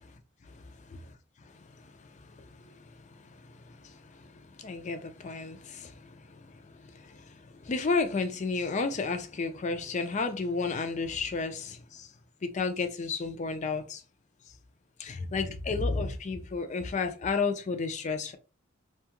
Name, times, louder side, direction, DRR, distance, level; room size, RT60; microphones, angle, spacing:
voice 1, 2.4-2.8 3.7-3.9 4.6-6.2 6.9-7.2 7.6-12.1 12.4-14.0 15.0-18.4, left 4 dB, 35° left, 0.4 m, -32 dB
2.6 x 2.3 x 2.9 m
head